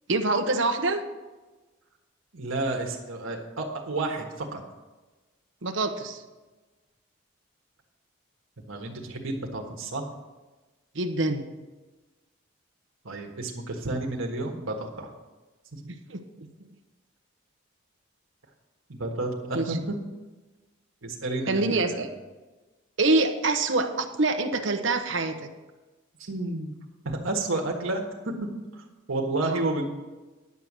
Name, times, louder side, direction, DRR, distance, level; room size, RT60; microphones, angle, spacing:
voice 1, 0.1-1.0 5.6-6.2 10.9-11.5 15.9-16.5 19.5-19.6 21.5-22.1 23.0-25.4 29.4-29.6, right 2 dB, 65° right, 7 dB, 0.9 m, -25 dB
voice 2, 2.3-4.6 8.7-10.0 13.0-15.1 15.7-15.9 18.9-19.9 21.0-22.0 26.2-26.7 27.0-28.5 28.7-29.9, right 2 dB, 85° right, 0 dB, 1.4 m, -31 dB
10.5 x 7.0 x 6.1 m, 1.2 s
head